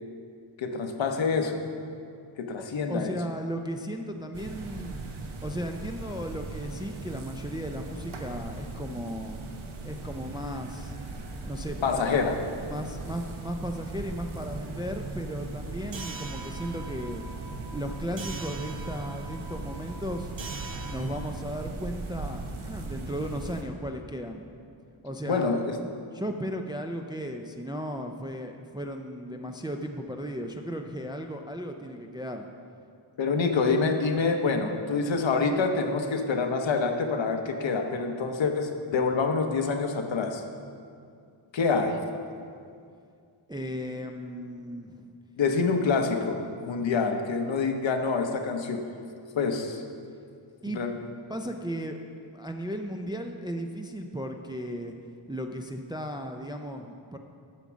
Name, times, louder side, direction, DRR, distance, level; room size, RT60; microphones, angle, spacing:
voice 1, 0.6-1.6 2.4-3.2 11.8-12.4 25.3-25.8 33.2-40.4 41.5-42.0 45.4-48.8 49.3-49.8 50.6-50.9, left 4 dB, 70° left, 5 dB, 0.9 m, -26 dB
voice 2, 2.9-5.0 5.4-9.4 9.8-11.0 11.4-12.2 12.7-17.2 17.7-20.3 20.8-24.5 25.0-25.6 26.1-32.5 43.5-45.1 50.6-50.8 51.3-54.9 55.3-57.2, equal, 10° right, 4 dB, 0.3 m, -35 dB
sound 1, 4.3-23.6, right 2 dB, 90° right, 1.1 m, -39 dB
sound 2, 15.9-21.0, right 4 dB, 65° right, 1.0 m, -42 dB
9.1 x 7.1 x 6.1 m, 2.4 s
wide cardioid pair, 175°, 47 cm